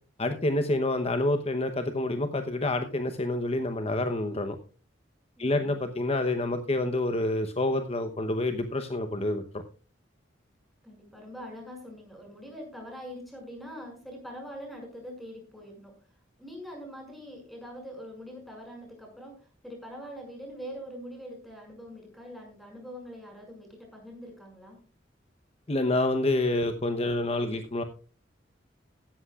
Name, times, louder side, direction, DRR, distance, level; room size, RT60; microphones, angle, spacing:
voice 1, 0.2-4.6 5.4-9.6 25.7-27.8, left 2 dB, 35° left, 8 dB, 0.9 m, -28 dB
voice 2, 5.4-5.7 10.8-15.9 16.4-24.8, equal, ahead, 1 dB, 6.2 m, -43 dB
16.5 x 13.5 x 2.4 m, 0.38 s
head